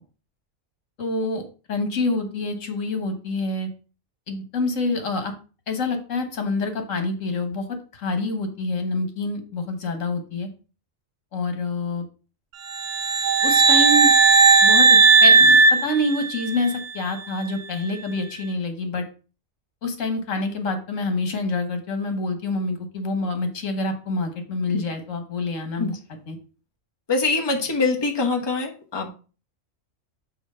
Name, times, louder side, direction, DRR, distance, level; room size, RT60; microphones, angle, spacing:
voice 1, 1.0-1.4 1.7-3.7 4.3-5.3 5.7-10.5 11.3-12.0 13.4-14.1 14.6-19.0 19.8-25.9 26.3-26.4, left 2 dB, 70° left, 6 dB, 1.7 m, -27 dB
sound 1, 12.7-16.8, right 4 dB, 70° right, 0.9 m, -15 dB
voice 2, 27.1-29.1, left 3 dB, 20° left, 2 dB, 1.0 m, -23 dB
5.8 x 4.4 x 5.5 m, 0.36 s
omnidirectional pair, 1.4 m